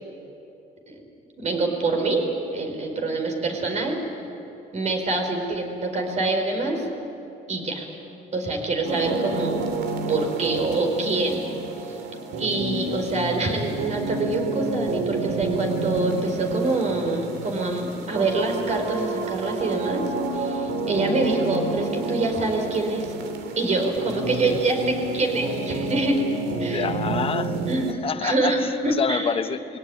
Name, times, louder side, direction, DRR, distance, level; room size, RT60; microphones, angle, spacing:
voice 1, 1.4-2.2 2.5-4.0 4.7-6.9 7.5-7.9 8.3-9.7 10.1-11.4 11.8-12.0 12.4-20.1 20.3-23.1 23.6-26.2 26.6-26.9 27.7-27.9 28.2-29.3, right 2 dB, 45° right, 3 dB, 4.7 m, -25 dB
sound 1, 8.8-27.9, right 3 dB, 75° right, 2.4 m, -29 dB
voice 2, 26.6-27.5 28.0-29.8, left 6 dB, 35° left, 10 dB, 1.0 m, -27 dB
22.0 x 17.5 x 10.0 m, 2.9 s
cardioid pair, 110°, 17 cm